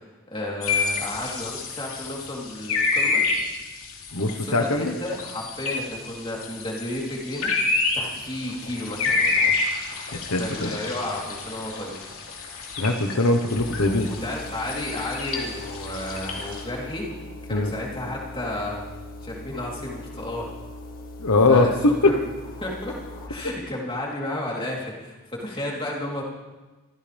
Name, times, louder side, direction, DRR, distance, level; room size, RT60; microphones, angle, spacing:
voice 1, 0.3-3.2 4.2-7.5 7.9-9.5 10.4-11.9 14.1-17.1 17.4-18.8 19.2-20.5 21.5-21.7 22.0-22.2 22.6-23.0 23.3-26.2, left 1 dB, 25° left, -3 dB, 3.6 m, -32 dB
sound 1, 0.6-16.6, left 4 dB, 70° left, 3.3 m, -29 dB
voice 2, 4.1-4.9 10.1-10.7 12.8-14.1 17.5-17.7 21.2-21.7 22.0-22.1, left 3 dB, 85° left, 5 dB, 1.2 m, -21 dB
sound 2, 13.5-23.3, left 1 dB, 40° left, 2.1 m, -40 dB
25.5 x 15.5 x 3.5 m, 1.2 s
head